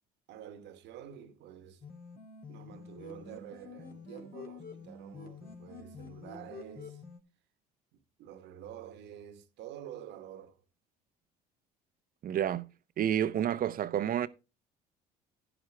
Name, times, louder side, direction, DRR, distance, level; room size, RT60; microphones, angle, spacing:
voice 1, 0.3-1.9 2.5-7.0 7.9-10.6, right 10 dB, 65° right, 1.3 m, -48 dB
sound 1, 1.8-7.2, left 4 dB, 50° left, 2.8 m, -48 dB
voice 2, 12.2-12.7 13.0-14.3, right 10 dB, 45° right, 0.8 m, -29 dB
11.0 x 10.0 x 3.4 m
hypercardioid pair, 65°, 20 cm